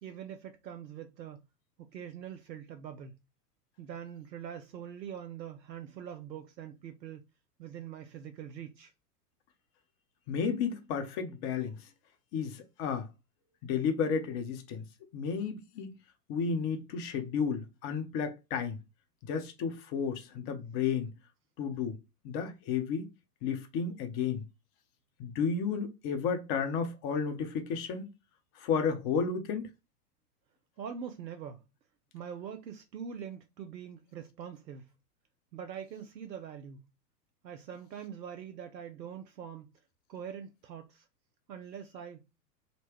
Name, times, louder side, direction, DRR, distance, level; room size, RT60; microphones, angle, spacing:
voice 1, 0.0-1.4 1.8-3.2 3.8-7.2 7.6-8.9 30.8-31.6 32.1-34.9 35.5-36.9 37.4-39.7 40.1-41.1 41.5-42.2, right 8 dB, 85° right, 0.6 m, -43 dB
voice 2, 10.3-11.9 12.3-13.1 13.6-14.8 15.1-15.9 16.3-18.8 19.2-21.1 21.6-22.0 22.2-23.1 23.4-24.5 25.2-28.1 28.6-29.7, left 6 dB, 35° left, 0.9 m, -32 dB
4.0 x 2.2 x 3.0 m
figure-of-eight pair, 100°, 49 cm